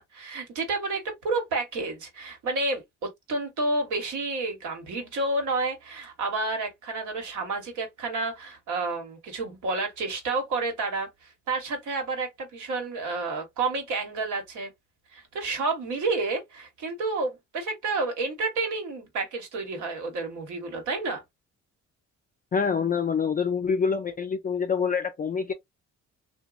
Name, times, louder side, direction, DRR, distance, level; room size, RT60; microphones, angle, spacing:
voice 1, 0.0-14.7 15.1-21.2, right 3 dB, 80° right, 1.3 m, -30 dB
voice 2, 22.5-25.5, left 6 dB, 30° left, 0.4 m, -26 dB
2.9 x 2.2 x 2.4 m
cardioid pair, 90°, 30 cm